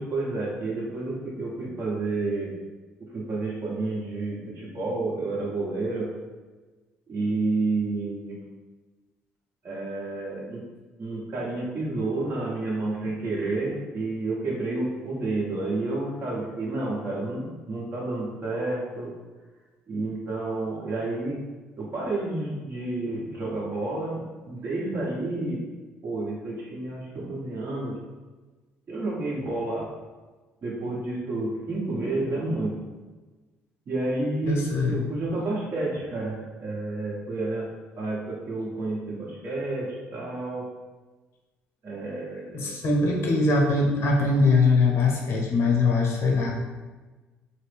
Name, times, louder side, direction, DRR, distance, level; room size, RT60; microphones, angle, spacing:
voice 1, 0.0-2.5 3.1-6.1 7.1-8.4 9.6-10.6 11.0-19.1 19.9-21.4 21.8-25.6 26.0-28.0 28.9-29.9 30.6-32.7 33.9-34.6 34.9-37.7 38.0-40.7 41.8-42.8, right 2 dB, 50° right, -4 dB, 1.2 m, -30 dB
voice 2, 34.5-35.1 42.5-46.5, left 3 dB, 60° left, 0 dB, 0.7 m, -22 dB
3.4 x 2.0 x 3.4 m, 1.3 s
hypercardioid pair, 60°, 5 cm